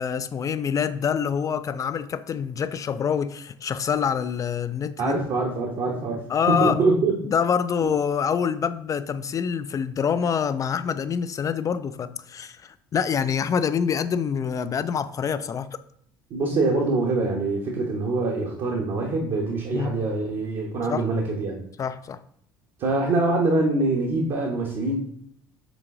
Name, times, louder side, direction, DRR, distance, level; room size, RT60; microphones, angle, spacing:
voice 1, 0.0-5.2 6.3-6.8 7.2-15.8 19.7-20.0 20.9-21.1 21.8-22.2, left 7 dB, 30° left, 0.4 m, -26 dB
voice 2, 5.0-7.2 7.8-7.9 16.3-21.6 22.8-25.0, right 3 dB, 45° right, 1.1 m, -24 dB
7.0 x 3.8 x 3.7 m
figure-of-eight pair, 55°, 11 cm